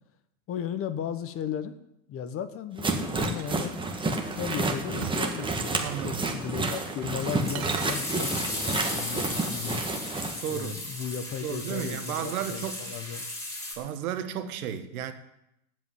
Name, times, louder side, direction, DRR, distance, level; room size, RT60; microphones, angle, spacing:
voice 1, 0.5-1.8 2.1-3.8 4.3-9.8 10.5-13.3, left 8 dB, 30° left, 1.1 m, -35 dB
sound 1, 2.8-10.3, right 3 dB, 10° right, 1.8 m, -30 dB
sound 2, 3.2-4.5 5.0-6.0 6.9-7.2 7.5-8.0, right 12 dB, 50° right, 1.1 m, -41 dB
voice 2, 5.8-6.2 10.4-10.8 11.4-13.0 13.8-15.1, right 9 dB, 70° right, 1.9 m, -33 dB
sound 3, 7.1-13.7, left 1 dB, 5° left, 4.7 m, -36 dB
16.5 x 5.5 x 9.8 m
hypercardioid pair, 125°, 44 cm